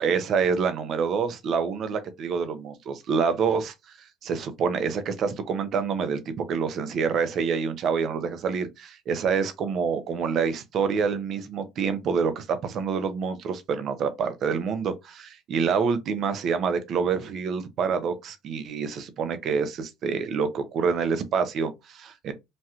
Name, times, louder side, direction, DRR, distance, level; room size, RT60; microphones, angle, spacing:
voice 1, 0.0-3.7 4.2-22.3, right 6 dB, 50° right, 0.7 m, -27 dB
3.1 x 2.3 x 2.8 m
supercardioid pair, 95°, 0 cm